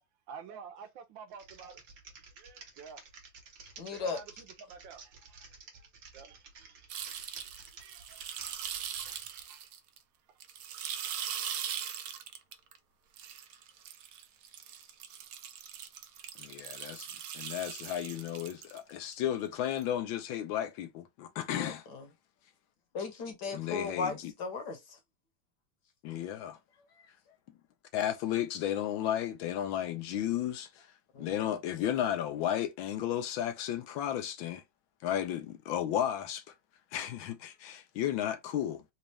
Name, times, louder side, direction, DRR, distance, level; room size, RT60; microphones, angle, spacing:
voice 1, 0.3-1.8 2.4-3.0 3.9-4.2 4.6-5.4 6.1-6.9 7.8-8.4 9.0-9.7, right 6 dB, 70° right, 1.4 m, -50 dB
Typing, 1.3-9.5, right 4 dB, 50° right, 1.2 m, -53 dB
voice 2, 3.8-4.4 21.6-22.1 22.9-25.0 31.1-31.5, left 4 dB, 60° left, 1.4 m, -37 dB
sound 1, 6.9-10.0 10.4-12.8 13.2-19.1 19.8-19.9, right 9 dB, 85° right, 0.8 m, -41 dB
voice 3, 16.4-17.1 17.3-21.8 23.5-24.3 26.0-26.6 27.9-30.9 31.2-34.6 35.0-36.5 36.9-38.8, left 11 dB, 75° left, 1.4 m, -33 dB
4.1 x 2.4 x 3.2 m
omnidirectional pair, 2.3 m